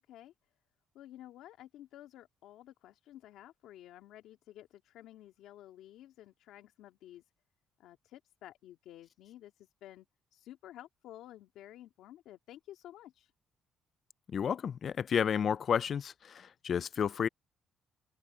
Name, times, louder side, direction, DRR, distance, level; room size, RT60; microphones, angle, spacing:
voice 1, 0.9-7.2 7.8-10.1 10.3-13.3, left 13 dB, 80° left, 2.6 m, -52 dB
voice 2, 14.3-17.3, left 7 dB, 45° left, 0.4 m, -31 dB
cardioid pair, 130°, 0 cm